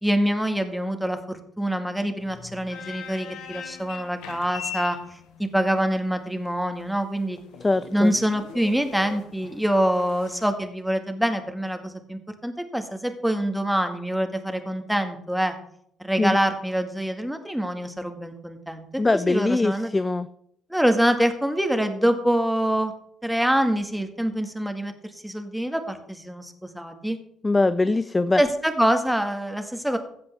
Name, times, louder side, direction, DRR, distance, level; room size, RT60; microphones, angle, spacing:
voice 1, 0.0-7.4 7.9-15.6 16.0-18.9 19.1-19.9 20.7-22.9 23.2-24.9 25.2-27.2 28.4-30.0, equal, ahead, 7 dB, 1.7 m, -25 dB
sound 1, 2.2-10.5, left 8 dB, 70° left, 1.3 m, -41 dB
voice 2, 7.6-8.1 16.2-16.4 19.0-20.3 27.4-28.4, left 2 dB, 20° left, 14 dB, 0.5 m, -22 dB
15.5 x 7.9 x 3.4 m, 0.70 s
hypercardioid pair, 50°, 0 cm